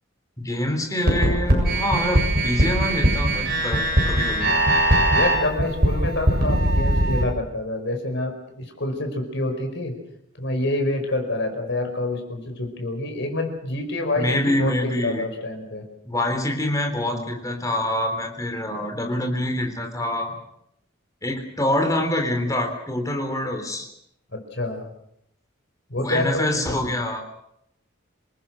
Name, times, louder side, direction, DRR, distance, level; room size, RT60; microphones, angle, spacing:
voice 1, 0.4-4.6 14.2-15.3 16.1-20.4 21.2-23.9 26.0-27.2, left 1 dB, 15° left, 5 dB, 3.7 m, -25 dB
sound 1, 1.1-7.2, right 1 dB, 50° right, 7.5 m, -20 dB
voice 2, 5.1-10.0 10.4-15.8 17.0-17.3 24.3-24.9 25.9-26.9, left 2 dB, 60° left, 4 dB, 5.3 m, -27 dB
28.0 x 19.0 x 6.5 m, 0.76 s
head